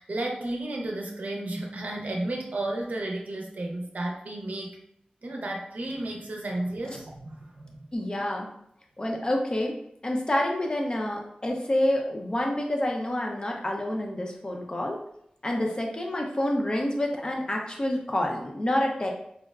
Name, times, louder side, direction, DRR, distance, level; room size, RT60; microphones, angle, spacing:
voice 1, 0.0-4.8 5.2-7.7, right 1 dB, 70° right, 0 dB, 0.6 m, -33 dB
voice 2, 7.9-8.5 9.0-9.7 10.0-15.0 15.4-19.1, left 1 dB, 30° left, 1 dB, 0.5 m, -28 dB
4.6 x 2.1 x 2.3 m, 0.74 s
wide cardioid pair, 90°, 3 cm